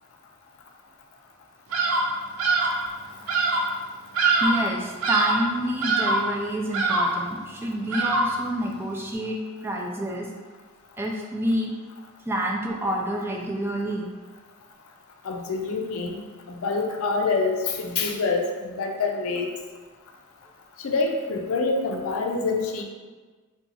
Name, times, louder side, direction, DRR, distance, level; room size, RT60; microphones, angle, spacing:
Bird vocalization bird call bird song, 1.7-2.1 2.4-2.8 3.3-3.7 4.1-4.7 5.0-5.5 5.8-6.3 6.7-7.2 7.9-8.4, right 3 dB, 90° right, 0.5 m, -23 dB
voice 1, 4.4-10.3 11.0-11.7 12.3-14.1, equal, 10° right, -1 dB, 0.3 m, -28 dB
voice 2, 15.2-19.5 20.8-22.8, left 4 dB, 80° left, 2 dB, 0.4 m, -26 dB
2.8 x 2.3 x 4.0 m, 1.4 s
head